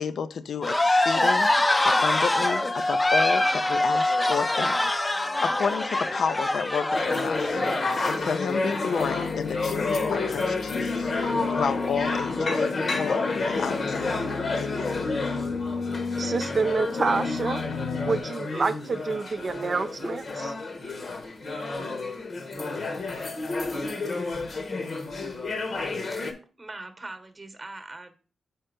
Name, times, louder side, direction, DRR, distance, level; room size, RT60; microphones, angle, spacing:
voice 1, 0.0-1.5 1.8-4.8 5.4-7.6 8.1-14.2 14.6-15.0, left 6 dB, 70° left, 0.4 m, -31 dB
sound 1, 0.6-8.2, left 1 dB, 20° left, 0.5 m, -24 dB
sound 2, 6.9-26.3, left 3 dB, 55° left, 1.0 m, -30 dB
sound 3, 9.0-18.2, left 4 dB, 90° left, 0.8 m, -33 dB
voice 2, 16.2-17.6 18.1-20.5, right 4 dB, 45° right, 0.4 m, -28 dB
voice 3, 25.8-26.2 26.6-28.1, right 2 dB, 25° right, 1.0 m, -42 dB
4.4 x 4.3 x 5.1 m
cardioid pair, 75°, 0 cm